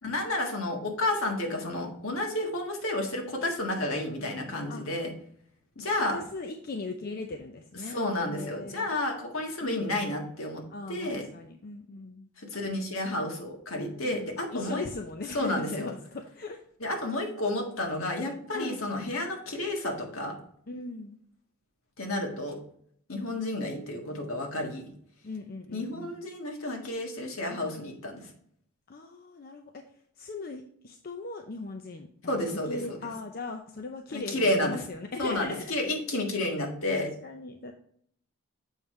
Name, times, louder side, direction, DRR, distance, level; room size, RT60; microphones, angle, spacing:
voice 1, 0.0-5.1 5.7-6.2 7.8-10.6 10.9-11.3 12.4-14.8 15.3-15.9 16.8-20.4 22.0-22.6 23.1-24.9 25.7-28.3 32.3-33.1 34.1-34.8 35.2-37.1, left 1 dB, 65° left, 2 dB, 1.6 m, -31 dB
voice 2, 6.1-9.0 9.6-9.8 10.7-12.3 14.0-16.6 18.5-18.8 20.7-21.2 25.2-26.2 28.9-29.8 30.2-32.4 32.7-35.7 36.9-37.7, left 3 dB, 45° left, 4 dB, 0.5 m, -39 dB
7.2 x 5.2 x 3.1 m, 0.66 s
head